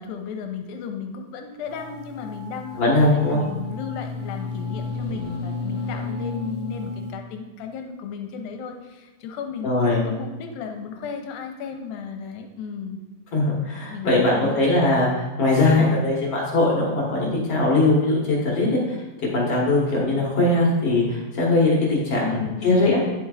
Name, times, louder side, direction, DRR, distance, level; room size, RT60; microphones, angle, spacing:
voice 1, 0.0-13.0 13.9-14.6 22.2-23.0, left 6 dB, 85° left, 4 dB, 2.4 m, -34 dB
sound 1, 1.7-7.1, left 3 dB, 30° left, 2.4 m, -32 dB
voice 2, 2.7-3.4 9.6-10.1 13.3-19.0 19.3-23.0, left 2 dB, 55° left, -4 dB, 1.8 m, -20 dB
11.0 x 7.3 x 2.4 m, 1.1 s
omnidirectional pair, 4.2 m